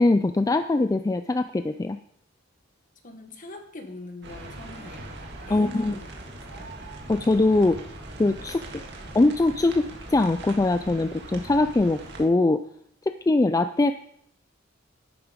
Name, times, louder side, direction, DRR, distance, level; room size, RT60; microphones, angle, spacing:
voice 1, 0.0-2.0 5.5-5.9 7.1-7.8 8.2-8.6 9.1-12.6 13.3-13.9, left 2 dB, 20° left, 9 dB, 0.3 m, -22 dB
voice 2, 3.0-5.1 5.4-6.1 6.5-6.7, left 1 dB, 45° left, 5 dB, 1.5 m, -41 dB
sound 1, 4.2-12.2, right 2 dB, 60° right, 1.8 m, -41 dB
11.0 x 8.7 x 5.1 m, 0.69 s
head